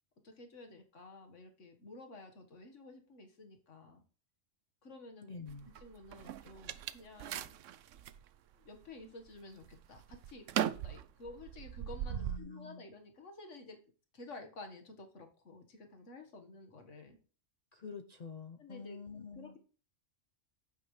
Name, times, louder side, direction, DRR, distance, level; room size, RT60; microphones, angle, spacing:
voice 1, 0.2-4.0 4.8-5.3 5.8-7.6 8.6-13.8 14.1-17.2 18.6-19.0 19.3-19.6, left 2 dB, 75° left, 4 dB, 1.9 m, -52 dB
voice 2, 5.2-5.7 12.1-12.9 17.7-19.6, left 4 dB, 40° left, 7 dB, 0.7 m, -47 dB
sound 1, 5.5-8.2 8.8-9.3 9.6-12.4, right 10 dB, 80° right, 1.0 m, -39 dB
11.5 x 8.9 x 3.2 m, 0.39 s
omnidirectional pair, 1.3 m